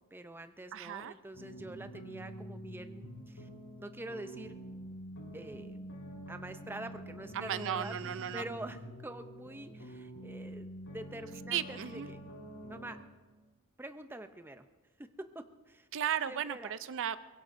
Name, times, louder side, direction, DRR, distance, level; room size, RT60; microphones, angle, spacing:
voice 1, 0.0-3.5 3.8-4.6 5.3-5.8 6.3-8.0 8.3-12.2 12.7-13.0 13.8-14.7 15.0-15.9 16.2-16.7, right 1 dB, 10° right, 9 dB, 0.5 m, -46 dB
voice 2, 0.7-1.1 7.3-8.4 11.5-12.1 15.9-17.2, right 9 dB, 60° right, 14 dB, 0.5 m, -35 dB
sound 1, 1.3-12.9, right 1 dB, 70° left, 3.9 m, -46 dB
23.5 x 21.0 x 2.6 m, 1.3 s
head